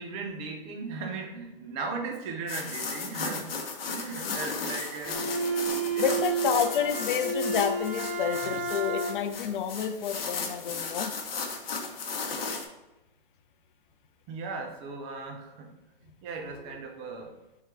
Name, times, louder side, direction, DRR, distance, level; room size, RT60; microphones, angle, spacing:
voice 1, 0.0-3.5 3.9-5.2 5.6-6.3 14.3-15.7 16.0-17.4, right 4 dB, 20° right, 2 dB, 0.5 m, -37 dB
sound 1, 2.5-12.7, left 4 dB, 80° left, 0.9 m, -35 dB
Bowed string instrument, 5.0-9.4, right 4 dB, 65° right, 0.8 m, -31 dB
voice 2, 6.0-11.1, left 8 dB, 60° left, 8 dB, 0.5 m, -29 dB
3.7 x 2.2 x 4.4 m, 1.0 s
hypercardioid pair, 150°, 29 cm